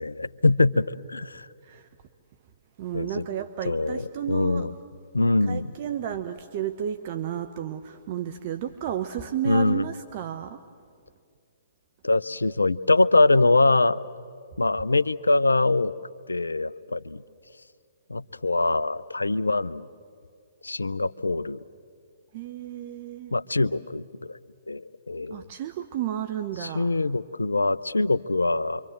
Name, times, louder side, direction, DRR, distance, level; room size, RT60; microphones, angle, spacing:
voice 1, 0.0-1.5 2.9-3.2 3.6-4.7 5.1-5.7 9.4-9.9 12.0-14.0 14.6-15.9 16.3-17.2 18.1-19.9 20.6-21.6 23.3-24.4 24.7-25.5 26.6-28.8, left 2 dB, 80° left, 17 dB, 0.6 m, -23 dB
voice 2, 2.8-4.7 5.4-10.6 22.3-23.3 25.3-26.9, right 10 dB, 45° right, 8 dB, 1.0 m, -32 dB
27.0 x 24.5 x 7.8 m, 2.2 s
figure-of-eight pair, 120°, 0 cm